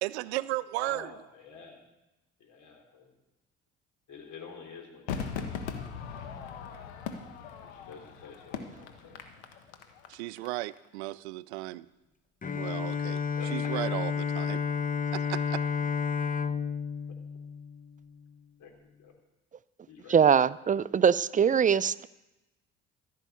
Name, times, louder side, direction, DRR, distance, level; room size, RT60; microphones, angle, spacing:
voice 1, 0.0-1.1 10.1-11.9 12.5-13.2 13.5-14.6 15.1-15.6, right 19 dB, 85° right, 18 dB, 0.5 m, -35 dB
voice 2, 0.8-1.8 2.4-3.1 4.1-5.7 7.7-9.2 13.4-13.5 18.6-18.7 19.0-19.1 19.9-20.8, left 5 dB, 65° left, 3 dB, 3.5 m, -49 dB
Crowd / Fireworks, 5.1-10.5 10.7-10.8, left 6 dB, 85° left, 1.3 m, -39 dB
Bowed string instrument, 12.4-18.3, left 6 dB, 25° left, 0.8 m, -31 dB
voice 3, 20.1-22.1, right 7 dB, 25° right, 18 dB, 0.5 m, -22 dB
15.0 x 6.6 x 8.4 m, 1.0 s
hypercardioid pair, 55°, 32 cm